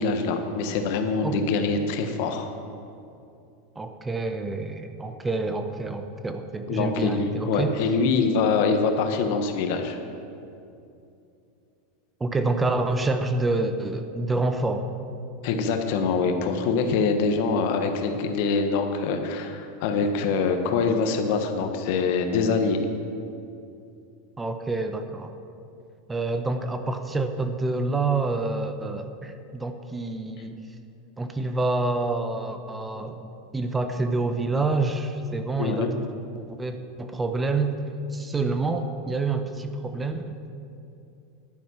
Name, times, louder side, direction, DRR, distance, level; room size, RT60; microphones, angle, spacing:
voice 1, 0.0-2.5 6.7-10.0 15.4-22.9 35.6-35.9, left 4 dB, 65° left, 6 dB, 1.2 m, -24 dB
voice 2, 3.8-7.7 12.2-14.9 24.4-25.3 26.1-30.6 31.2-33.3 33.5-35.9 36.3-37.8 38.1-40.3, right 3 dB, 15° right, 7 dB, 0.8 m, -27 dB
11.0 x 9.3 x 5.8 m, 2.6 s
hypercardioid pair, 105°, 0 cm